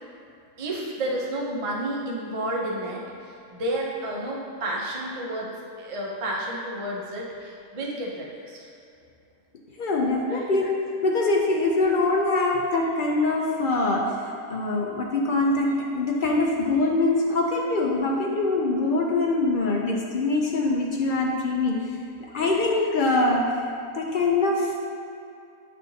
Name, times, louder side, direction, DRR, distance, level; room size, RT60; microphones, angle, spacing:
voice 1, 0.6-8.7 10.3-10.5 22.4-22.6, right 1 dB, 35° right, -3 dB, 0.5 m, -31 dB
voice 2, 9.8-10.7 11.0-15.7 15.9-21.8 22.3-23.4 24.0-24.8, left 2 dB, 65° left, -1 dB, 0.5 m, -23 dB
8.3 x 4.4 x 2.7 m, 2.6 s
omnidirectional pair, 1.5 m